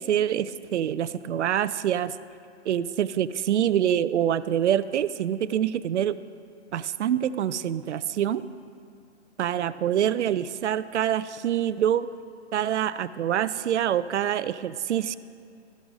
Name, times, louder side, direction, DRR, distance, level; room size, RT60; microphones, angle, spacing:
voice 1, 0.0-2.1 2.7-6.2 6.7-8.4 9.4-12.1 12.5-15.2, right 10 dB, 75° right, 16 dB, 0.5 m, -25 dB
13.5 x 6.3 x 5.2 m, 2.4 s
hypercardioid pair, 165°, 35 cm